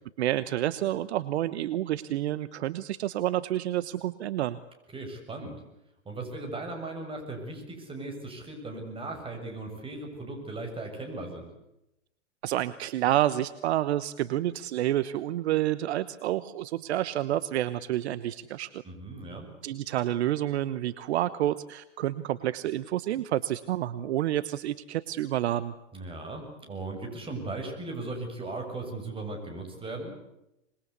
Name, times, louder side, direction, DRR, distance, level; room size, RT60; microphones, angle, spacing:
voice 1, 0.2-4.6 12.4-18.8 19.6-25.7, right 13 dB, 60° right, 15 dB, 1.1 m, -29 dB
voice 2, 4.9-5.6 6.1-11.5 18.8-19.5 25.9-30.1, right 2 dB, 15° right, 3 dB, 7.1 m, -37 dB
26.5 x 21.5 x 8.3 m, 0.87 s
hypercardioid pair, 115°, 37 cm